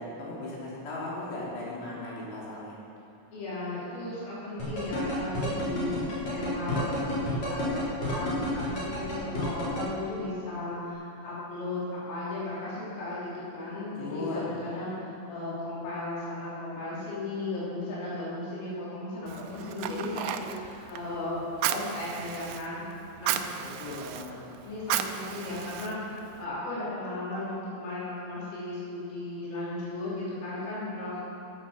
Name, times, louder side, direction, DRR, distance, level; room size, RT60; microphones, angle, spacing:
voice 1, 0.0-2.8 13.9-14.5 23.6-24.4, left 2 dB, 60° left, -6 dB, 4.9 m, -37 dB
voice 2, 3.3-22.8 23.2-23.4 24.6-31.2, left 2 dB, 80° left, -9 dB, 6.0 m, -35 dB
sound 1, 4.6-9.8, left 1 dB, 35° left, 4.3 m, -30 dB
Fire, 19.3-26.5, right 11 dB, 85° right, 2.6 m, -35 dB
15.0 x 8.9 x 6.2 m, 2.6 s
omnidirectional pair, 5.8 m